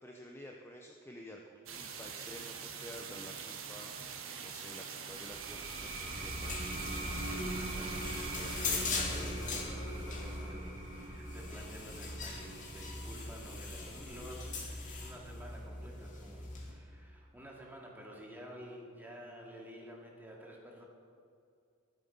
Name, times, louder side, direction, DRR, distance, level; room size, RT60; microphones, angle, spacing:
voice 1, 0.0-3.9 4.4-6.7, equal, 10° left, 1 dB, 0.7 m, -51 dB
sound 1, 1.7-9.0, right 6 dB, 65° right, 1.4 m, -44 dB
sound 2, 5.1-16.3, right 1 dB, 25° right, 2.6 m, -44 dB
sound 3, 6.0-16.7, left 3 dB, 35° left, 2.6 m, -41 dB
voice 2, 7.2-20.8, equal, 10° right, -2 dB, 2.4 m, -50 dB
22.0 x 7.8 x 5.4 m, 2.4 s
head